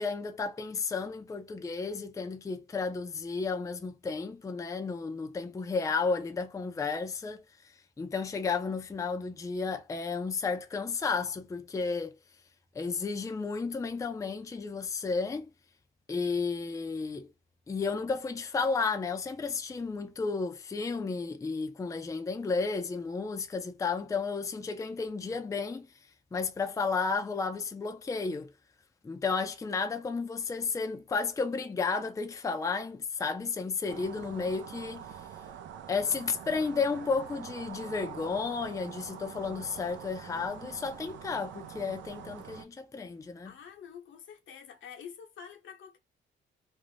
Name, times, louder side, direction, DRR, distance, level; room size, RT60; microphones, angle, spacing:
voice 1, 0.0-7.4 8.0-12.2 12.7-15.5 16.1-17.3 17.7-25.9 26.3-28.5 29.0-35.0 35.9-43.5, left 4 dB, 15° left, 0.4 m, -32 dB
sound 1, 33.9-42.6, right 8 dB, 70° right, 0.5 m, -45 dB
voice 2, 43.4-46.0, left 7 dB, 75° left, 0.9 m, -47 dB
2.5 x 2.0 x 3.1 m
cardioid pair, 90°, 20 cm